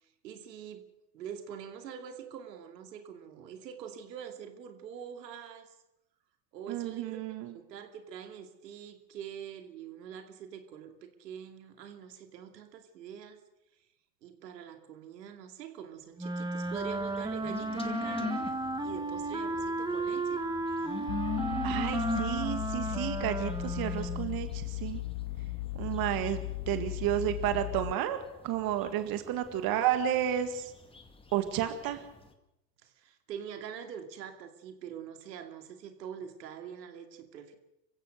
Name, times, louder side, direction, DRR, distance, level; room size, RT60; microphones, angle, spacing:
voice 1, 0.0-0.9 1.1-5.7 6.5-7.2 7.4-13.4 14.2-20.5 32.8-37.5, right 8 dB, 85° right, 6 dB, 2.7 m, -44 dB
voice 2, 6.7-7.5 21.6-25.0 25.7-26.4 26.7-30.7 31.3-32.0, right 11 dB, 45° right, 9 dB, 2.0 m, -31 dB
Wind instrument woodwind instrument, 16.2-24.4, right 2 dB, 10° right, 1.6 m, -34 dB
sound 1, 16.6-32.3, left 2 dB, 10° left, 2.1 m, -41 dB
sound 2, 21.1-27.9, left 18 dB, 65° left, 0.7 m, -37 dB
25.5 x 16.0 x 6.6 m, 0.90 s
hypercardioid pair, 110°, 49 cm